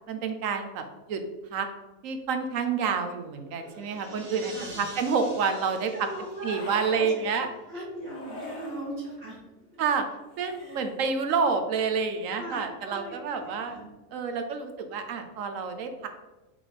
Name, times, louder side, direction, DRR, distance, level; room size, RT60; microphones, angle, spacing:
voice 1, 0.1-1.2 1.5-1.7 2.0-5.9 6.4-7.5 8.6-9.2 9.8-10.0 10.4-13.8 14.1-16.1, right 5 dB, 75° right, 7 dB, 1.1 m, -29 dB
sound 1, 3.1-7.5, right 1 dB, 90° right, 1.7 m, -46 dB
voice 2, 4.4-5.3 5.9-9.4 10.6-10.8 12.4-13.9, equal, 45° right, -8 dB, 1.7 m, -40 dB
sound 2, 4.6-5.5 6.4-7.1 8.0-8.9 10.2-11.0, left 1 dB, 75° left, 1.6 m, -44 dB
5.5 x 3.5 x 4.9 m, 1.1 s
omnidirectional pair, 1.4 m